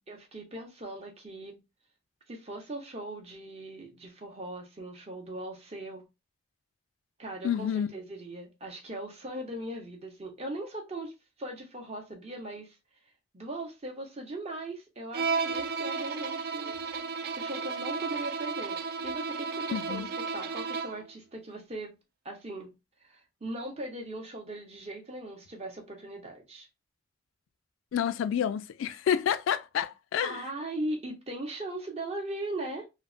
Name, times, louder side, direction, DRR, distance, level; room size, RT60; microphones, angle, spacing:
voice 1, 0.1-1.6 2.3-6.0 7.2-12.8 13.3-16.8 17.4-20.0 20.3-21.9 22.2-22.7 23.0-26.7 30.2-32.8, right 1 dB, 30° right, 0.7 m, -39 dB
voice 2, 7.4-7.9 19.7-20.1 27.9-30.4, left 8 dB, 80° left, 0.3 m, -29 dB
Bowed string instrument, 15.1-21.1, right 5 dB, 50° right, 0.3 m, -33 dB
3.3 x 2.0 x 2.5 m
head